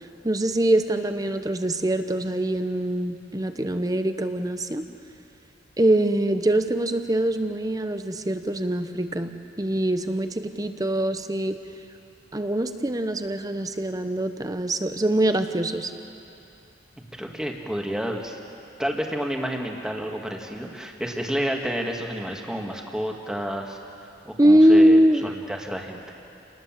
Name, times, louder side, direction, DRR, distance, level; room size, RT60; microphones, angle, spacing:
voice 1, 0.2-4.8 5.8-9.3 9.6-11.6 12.3-15.9 24.4-25.4, right 1 dB, 20° right, 8 dB, 0.9 m, -23 dB
voice 2, 17.2-18.4 18.8-23.8 24.2-26.0, equal, 5° right, 1 dB, 2.0 m, -30 dB
29.5 x 19.5 x 7.6 m, 2.7 s
head